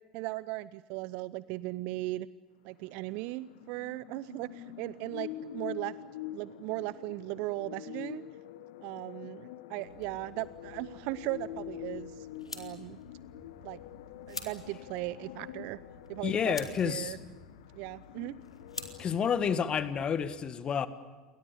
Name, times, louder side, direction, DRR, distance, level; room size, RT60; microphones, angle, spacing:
voice 1, 0.1-2.3 2.6-5.9 6.3-8.2 8.8-12.3 12.5-13.0 13.6-13.8 14.3-15.8 16.1-17.2 17.7-18.3, right 19 dB, 50° right, 0.7 m, -37 dB
sound 1, 2.8-19.1, left 12 dB, 60° left, 1.4 m, -46 dB
sound 2, 9.9-20.2, left 2 dB, 90° left, 2.7 m, -49 dB
voice 2, 16.2-17.1 19.0-20.9, left 7 dB, 30° left, 1.7 m, -29 dB
29.5 x 23.0 x 6.8 m
figure-of-eight pair, 75°, 3 cm